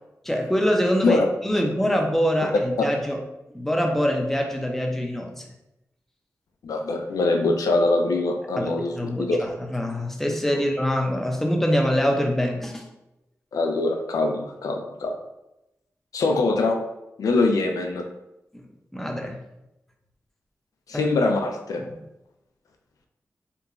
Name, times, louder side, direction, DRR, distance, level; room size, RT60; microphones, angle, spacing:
voice 1, 0.2-3.2 3.5-5.4 8.6-12.9 18.5-18.6 18.9-19.4 20.9-21.0 21.8-21.9, equal, 5° left, 1 dB, 0.5 m, -24 dB
voice 2, 6.6-9.4 13.5-15.2 16.1-16.8 17.2-18.1 20.9-21.8, left 2 dB, 80° left, 4 dB, 0.4 m, -23 dB
2.9 x 2.2 x 2.4 m, 0.90 s
cardioid pair, 45°, 6 cm